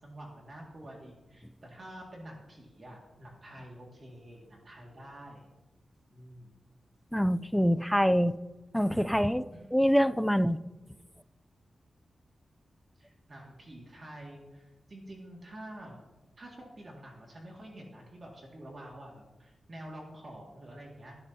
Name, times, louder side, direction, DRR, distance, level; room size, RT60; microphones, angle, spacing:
voice 1, 0.0-5.5 6.1-6.5 9.5-10.0 13.0-16.0 16.4-21.2, right 1 dB, 40° right, -2 dB, 2.0 m, -48 dB
voice 2, 7.1-8.4 8.7-10.6, equal, ahead, 13 dB, 0.3 m, -25 dB
17.0 x 11.5 x 2.8 m, 1.1 s
wide cardioid pair, 130°, 0 cm